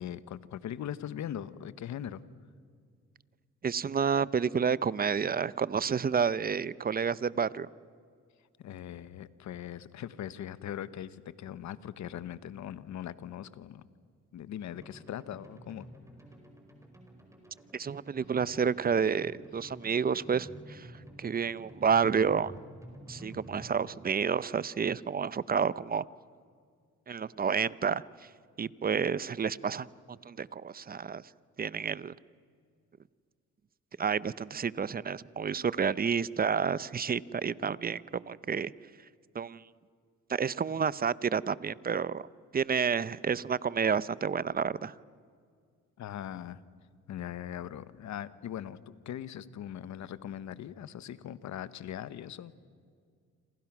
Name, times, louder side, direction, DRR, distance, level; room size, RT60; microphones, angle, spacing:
voice 1, 0.0-2.2 8.6-13.8 14.3-15.9 46.0-46.6 47.1-48.8 49.0-52.5, left 10 dB, 70° left, 15 dB, 1.1 m, -40 dB
voice 2, 3.6-7.7 17.7-20.9 21.2-22.5 23.1-26.0 27.1-28.3 28.6-31.2 31.6-32.1 34.0-38.7 39.3-39.7 40.3-42.3 42.5-44.9, right 6 dB, 30° right, 19 dB, 0.7 m, -30 dB
sound 1, 14.7-23.7, right 1 dB, 10° right, 5.0 m, -50 dB
28.5 x 26.5 x 6.1 m, 2.1 s
cardioid pair, 90°, 30 cm